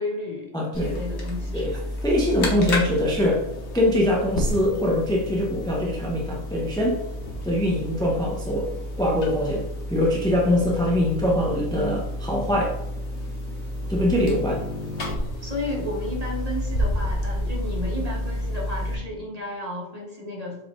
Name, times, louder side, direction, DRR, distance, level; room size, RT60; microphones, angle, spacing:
voice 1, 0.0-1.8 13.9-14.2 15.4-20.6, left 1 dB, 30° right, -2 dB, 1.7 m, -33 dB
voice 2, 0.5-0.9 1.5-1.8 2.0-3.4 3.7-7.0 7.4-9.6 9.9-12.8 13.9-14.6, left 1 dB, 5° left, -2 dB, 0.9 m, -23 dB
sound 1, 0.7-19.0, left 1 dB, 65° left, 1.5 m, -30 dB
7.4 x 4.3 x 3.8 m, 0.88 s
omnidirectional pair, 1.2 m